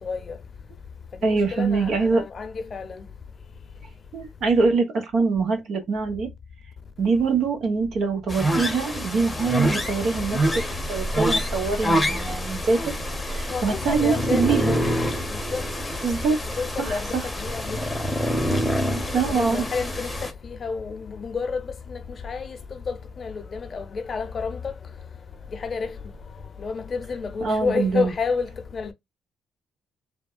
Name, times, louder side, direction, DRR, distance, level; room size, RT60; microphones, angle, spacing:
voice 1, 0.0-0.4 1.2-3.1 13.5-15.0 15.3-15.6 16.6-18.1 19.0-24.7 25.5-26.0 26.6-28.9, left 5 dB, 45° left, 0.7 m, -30 dB
voice 2, 1.2-2.2 4.1-6.3 7.0-10.5 10.9-12.9 13.3-14.7 16.0-16.4 16.8-16.9 19.1-19.7 27.4-28.1, right 4 dB, 65° right, 1.0 m, -24 dB
sound 1, 8.3-20.3, equal, 10° left, 0.8 m, -26 dB
3.3 x 2.2 x 2.3 m
cardioid pair, 90°, 0 cm